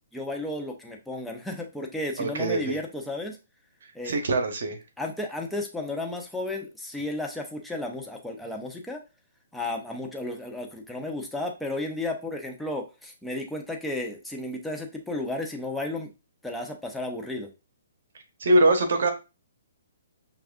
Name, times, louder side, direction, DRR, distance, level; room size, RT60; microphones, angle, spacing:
voice 1, 0.1-3.4 3.9-4.2 5.0-9.0 9.5-16.1 16.4-17.5, left 2 dB, 5° left, 0 dB, 0.7 m, -33 dB
voice 2, 2.2-2.8 4.0-4.8 18.4-19.1, right 2 dB, 65° right, 6 dB, 1.0 m, -22 dB
5.7 x 2.4 x 2.5 m, 0.28 s
hypercardioid pair, 135°, 0 cm